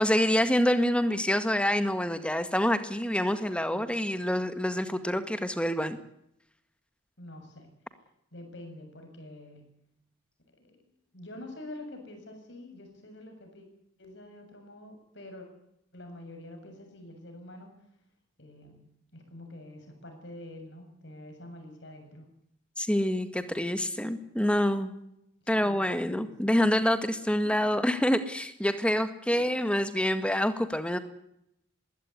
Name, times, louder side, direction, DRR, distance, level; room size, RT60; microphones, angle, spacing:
voice 1, 0.0-6.0 22.8-24.9 25.5-31.0, equal, 5° left, 10 dB, 1.8 m, -26 dB
voice 2, 7.2-7.7 8.3-9.6 10.6-13.7 14.0-15.5 15.9-17.7 18.4-22.3 25.4-26.7 29.3-29.5, left 1 dB, 60° left, 5 dB, 7.2 m, -47 dB
21.0 x 16.5 x 9.8 m, 0.78 s
head